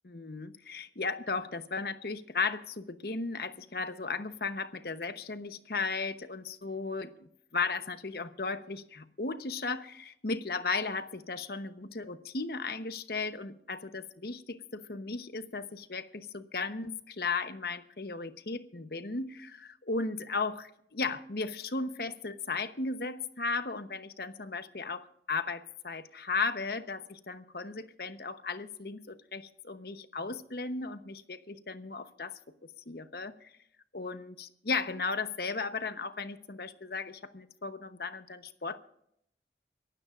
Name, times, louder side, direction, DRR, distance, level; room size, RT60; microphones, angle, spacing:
voice 1, 0.1-32.4 32.9-33.5 33.9-38.8, left 4 dB, 60° left, 10 dB, 1.0 m, -36 dB
24.5 x 15.5 x 2.5 m, 0.72 s
head